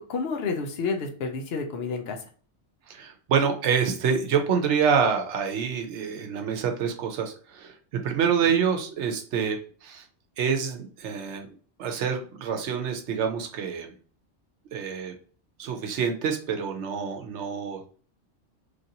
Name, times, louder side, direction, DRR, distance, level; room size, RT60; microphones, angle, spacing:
voice 1, 0.1-2.2 8.4-8.6, left 4 dB, 65° left, 3 dB, 0.9 m, -30 dB
voice 2, 2.9-7.8 8.0-10.0 10.4-11.5 11.8-13.9 14.7-15.1 15.6-17.9, right 6 dB, 80° right, 4 dB, 0.9 m, -27 dB
3.2 x 2.6 x 2.7 m, 0.41 s
omnidirectional pair, 1.2 m